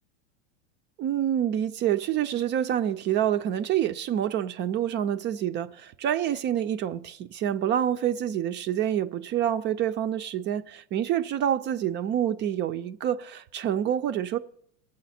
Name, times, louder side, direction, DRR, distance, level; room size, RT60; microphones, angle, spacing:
voice 1, 1.0-14.4, right 10 dB, 30° right, 0.4 m, -27 dB
20.5 x 7.7 x 4.2 m
supercardioid pair, 120°, 38 cm